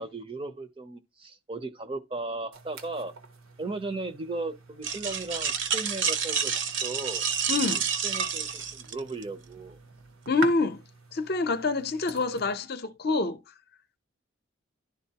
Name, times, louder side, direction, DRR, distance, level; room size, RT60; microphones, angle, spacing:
voice 1, 0.0-3.1 3.6-7.3 8.0-9.8, right 3 dB, 25° right, 0.5 m, -36 dB
sound 1, 2.5-12.6, right 3 dB, 85° right, 1.1 m, -46 dB
sound 2, 4.8-9.2, right 7 dB, 65° right, 0.8 m, -29 dB
voice 2, 7.5-7.9 10.3-10.8 11.1-13.4, left 3 dB, 50° left, 0.6 m, -26 dB
11.5 x 3.8 x 2.8 m
head